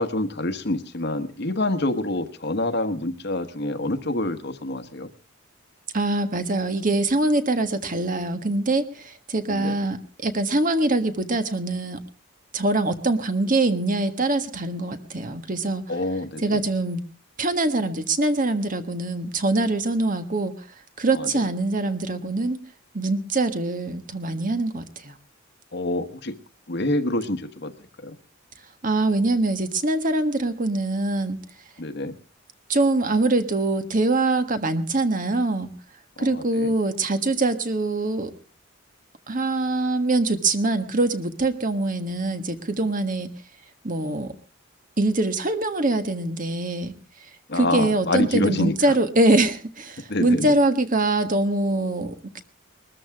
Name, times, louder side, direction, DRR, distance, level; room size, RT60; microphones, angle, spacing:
voice 1, 0.0-5.1 9.5-9.8 15.9-16.6 21.1-21.5 25.7-26.3 26.7-27.7 28.0-28.2 31.8-32.1 36.2-36.7 47.5-48.9 50.1-50.6, left 2 dB, 55° left, 9 dB, 1.3 m, -27 dB
voice 2, 5.9-10.0 10.2-12.0 12.5-15.8 16.4-17.0 17.4-20.5 21.0-22.6 22.9-25.1 28.8-31.4 32.7-35.7 36.2-38.3 39.3-43.3 43.8-44.3 45.0-46.9 47.5-52.4, right 2 dB, 40° right, 8 dB, 1.5 m, -23 dB
21.5 x 13.5 x 3.6 m, 0.37 s
head